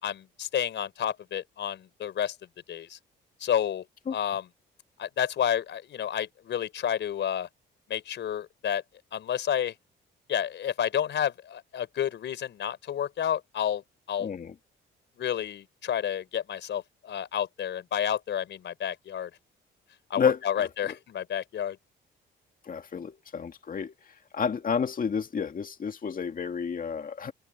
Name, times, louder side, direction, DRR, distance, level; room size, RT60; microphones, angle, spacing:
voice 1, 0.0-2.3 2.7-3.0 3.4-3.8 4.1-4.4 5.0-7.5 7.9-8.8 9.1-9.7 10.3-13.8 14.1-14.3 15.2-19.3 20.1-21.8, left 9 dB, 65° left, 4.7 m, -30 dB
voice 2, 14.2-14.5 20.2-21.0 22.6-23.9 24.3-27.3, left 6 dB, 45° left, 2.1 m, -30 dB
open air
cardioid pair, 90°, 20 cm